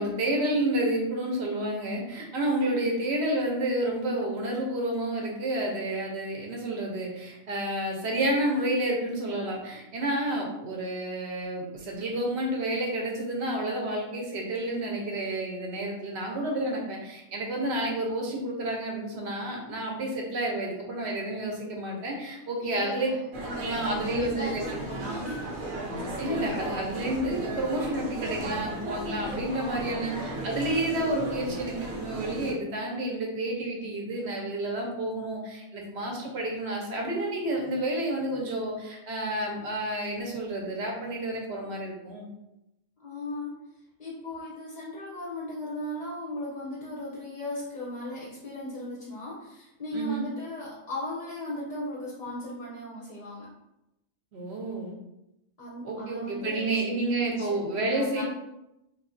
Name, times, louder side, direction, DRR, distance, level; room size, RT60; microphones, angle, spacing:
voice 1, 0.0-23.1 23.5-24.6 26.2-42.3 49.9-50.3 54.3-54.9 55.8-58.2, right 1 dB, 60° right, 0 dB, 0.9 m, -30 dB
voice 2, 22.6-23.3 23.7-25.5 29.5-30.2 43.0-43.5 44.0-53.5 55.6-58.2, left 1 dB, 45° left, -5 dB, 0.6 m, -37 dB
sound 1, 23.3-32.5, right 1 dB, 85° right, 1.1 m, -35 dB
3.4 x 2.3 x 2.5 m, 0.90 s
omnidirectional pair, 1.4 m